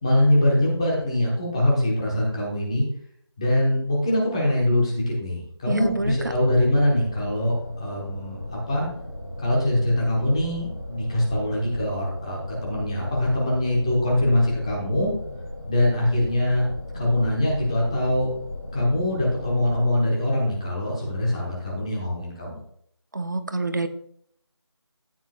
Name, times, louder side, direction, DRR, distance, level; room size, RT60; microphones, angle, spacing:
voice 1, 0.0-2.8 3.4-8.4 8.7-8.9 9.4-15.1 15.7-18.3 18.7-22.6, left 1 dB, 10° left, -4 dB, 1.2 m, -23 dB
sound 1, 5.7-19.9, left 1 dB, 30° left, 2.8 m, -37 dB
voice 2, 5.7-6.2 23.1-23.9, right 2 dB, 40° right, 9 dB, 0.8 m, -27 dB
14.0 x 9.0 x 2.4 m, 0.67 s
figure-of-eight pair, 170°, 15 cm